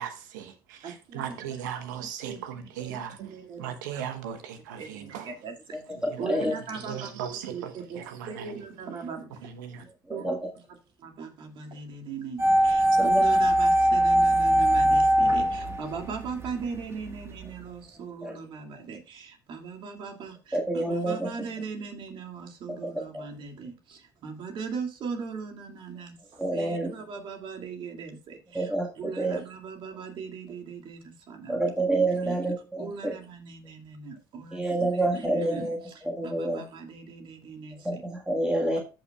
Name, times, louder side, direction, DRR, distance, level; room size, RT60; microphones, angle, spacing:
voice 1, 0.0-3.2 3.6-5.3 6.1-6.2 6.9-8.5 9.4-9.8, right 9 dB, 90° right, 1.1 m, -37 dB
voice 2, 0.8-1.4 2.0-2.4 2.8-3.8 4.3-4.4 4.8-5.8 6.2-9.5 9.8-10.6 11.0-31.7 32.1-32.4 32.8-38.0 38.7-38.8, right 5 dB, 60° right, 2.4 m, -39 dB
voice 3, 6.0-6.5 10.1-10.4 13.0-13.3 18.2-18.3 20.5-21.3 22.8-23.2 26.4-26.9 28.5-28.9 29.2-29.4 31.5-33.1 34.5-35.8 36.0-36.6 37.9-38.8, right 2 dB, 5° right, 1.7 m, -28 dB
sound 1, 12.4-16.5 16.7-16.8, right 1 dB, 25° right, 1.6 m, -21 dB
14.0 x 5.9 x 2.4 m
hypercardioid pair, 75°, 10 cm